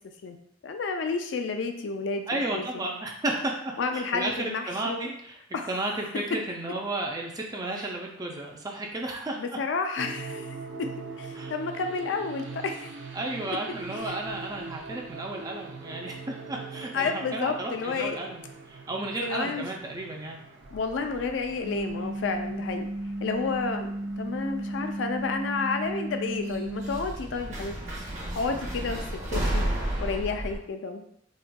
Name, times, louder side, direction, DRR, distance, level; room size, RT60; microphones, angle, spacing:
voice 1, 0.6-2.8 3.8-5.1 5.5-5.7 9.4-10.9 11.2-12.9 14.0-14.2 16.9-18.2 19.2-19.6 20.7-22.9 23.2-27.8 28.4-29.0 29.3-29.6 30.0-31.0, left 4 dB, 80° left, 6 dB, 0.4 m, -31 dB
voice 2, 2.3-5.4 5.7-9.4 11.3-11.5 13.1-18.4 18.7-20.4, right 2 dB, 20° right, 0 dB, 0.4 m, -33 dB
sound 1, 10.0-29.2, right 4 dB, 85° right, 0.5 m, -44 dB
sound 2, 20.6-22.7 22.9-23.6 24.7-24.8 26.5-30.6, right 1 dB, 40° right, 0.8 m, -32 dB
sound 3, 21.6-27.0, right 1 dB, 45° left, 0.7 m, -34 dB
4.1 x 2.4 x 2.2 m, 0.70 s
head